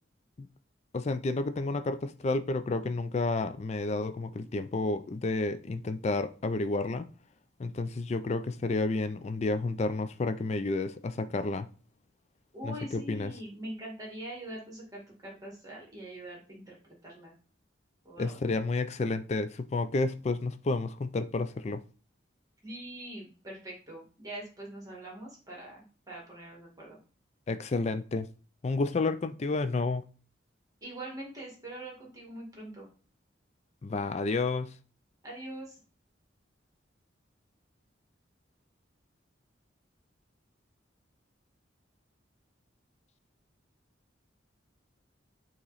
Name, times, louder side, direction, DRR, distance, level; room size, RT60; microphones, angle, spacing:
voice 1, 0.9-7.1 7.6-11.7 12.6-13.3 18.2-21.8 27.5-28.3 28.6-30.0 33.8-34.7, left 3 dB, 35° left, 0.4 m, -30 dB
voice 2, 12.5-17.3 18.0-18.4 22.6-27.0 30.8-32.9 35.2-35.8, right 1 dB, 20° right, 1.8 m, -43 dB
8.6 x 3.0 x 4.0 m
head